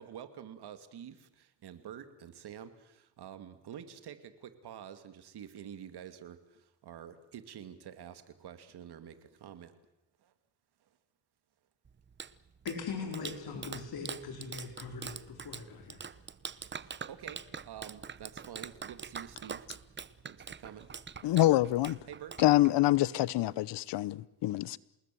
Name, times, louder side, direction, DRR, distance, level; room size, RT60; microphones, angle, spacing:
voice 1, 0.0-6.4 6.8-9.7 16.8-17.4 17.6-19.6 20.2-20.9 22.1-22.3, right 9 dB, 70° right, 2.5 m, -48 dB
Clapping, 11.8-23.0, right 6 dB, 25° right, 0.8 m, -45 dB
voice 2, 12.6-16.0, left 5 dB, 65° left, 4.5 m, -40 dB
voice 3, 21.2-22.0 22.4-24.8, left 15 dB, 80° left, 0.9 m, -26 dB
27.5 x 20.0 x 7.7 m
cardioid pair, 95°, 41 cm